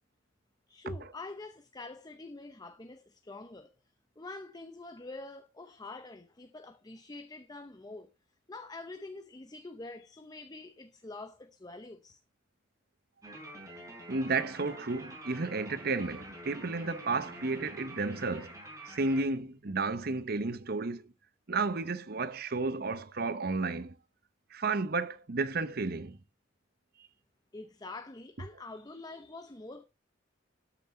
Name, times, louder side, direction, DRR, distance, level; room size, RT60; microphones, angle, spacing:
voice 1, 0.7-3.7 4.2-8.1 8.5-12.2 27.5-29.8, left 2 dB, 20° left, 0.8 m, -46 dB
sound 1, 13.2-19.2, right 1 dB, 20° right, 4.6 m, -47 dB
voice 2, 14.1-18.5 18.9-21.1 21.5-23.9 24.5-26.2, right 3 dB, 55° right, 0.9 m, -32 dB
13.0 x 6.0 x 4.4 m
head